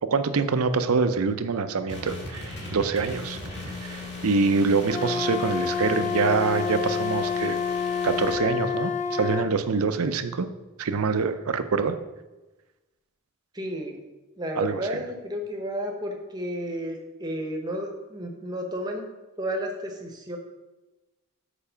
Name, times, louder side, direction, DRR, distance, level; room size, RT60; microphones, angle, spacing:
voice 1, 0.0-7.6 8.0-10.5 10.8-12.0 14.6-15.0, right 4 dB, 90° right, 10 dB, 0.6 m, -25 dB
sound 1, 1.9-8.3, left 3 dB, 50° left, 2.0 m, -37 dB
Wind instrument woodwind instrument, 4.9-9.5, left 6 dB, 35° left, 0.5 m, -28 dB
voice 2, 13.5-14.0 14.4-19.1 19.4-20.4, equal, 20° right, 2 dB, 1.0 m, -32 dB
6.9 x 4.8 x 5.6 m, 1.1 s
head